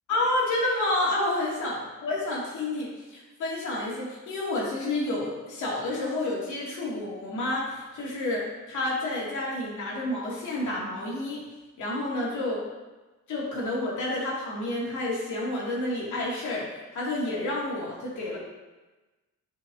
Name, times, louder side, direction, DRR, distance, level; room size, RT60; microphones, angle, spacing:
voice 1, 0.1-11.4 11.8-12.6 13.3-18.4, left 2 dB, 75° left, -5 dB, 2.4 m, -29 dB
10.0 x 4.9 x 2.7 m, 1.2 s
cardioid pair, 90°, 30 cm